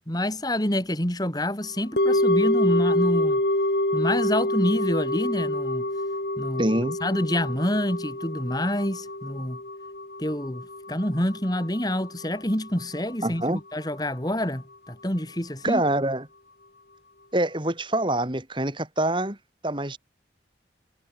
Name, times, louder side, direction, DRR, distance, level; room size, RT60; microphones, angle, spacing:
voice 1, 0.1-3.4 3.9-5.9 6.4-6.7 7.0-9.6 10.2-15.8, left 1 dB, 20° left, 4.0 m, -27 dB
sound 1, 2.0-12.2 12.5-12.6, left 1 dB, 65° left, 3.8 m, -26 dB
voice 2, 6.6-7.0 13.2-13.6 15.6-16.2 17.3-19.4 19.6-20.0, right 1 dB, 25° right, 3.5 m, -25 dB
head